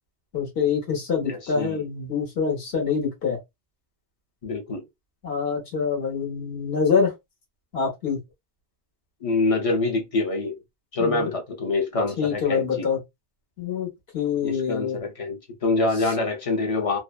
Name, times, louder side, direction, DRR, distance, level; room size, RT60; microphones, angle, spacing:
voice 1, 0.3-3.4 5.2-7.1 7.7-8.2 11.0-11.3 12.2-13.0 13.6-13.9 14.1-15.0, left 6 dB, 65° left, 1.3 m, -25 dB
voice 2, 1.3-1.8 4.4-4.8 9.2-10.5 10.9-12.9 14.4-17.0, left 3 dB, 35° left, 0.7 m, -25 dB
2.7 x 2.0 x 2.3 m
omnidirectional pair, 1.2 m